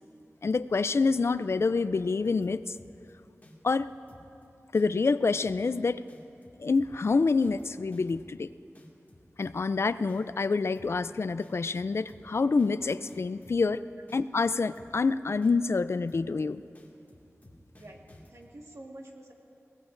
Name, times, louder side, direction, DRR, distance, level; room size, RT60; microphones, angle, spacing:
voice 1, 0.4-2.8 3.6-3.9 4.7-6.0 6.6-8.5 9.4-13.8 14.1-16.6, left 4 dB, 55° left, 14 dB, 0.3 m, -27 dB
sound 1, 2.2-3.1 3.4-4.4 4.7-5.1 5.4-5.8 6.1-8.4 8.7-9.8 10.1-10.4 10.7-11.1 11.4-13.8 14.1-15.1 15.4-15.8 16.1-16.4 16.7-18.5, left 1 dB, 35° left, 2.0 m, -54 dB
voice 2, 18.3-19.3, right 1 dB, 65° right, 0 dB, 1.7 m, -47 dB
22.0 x 19.0 x 2.6 m, 2.8 s
wide cardioid pair, 75°, 5 cm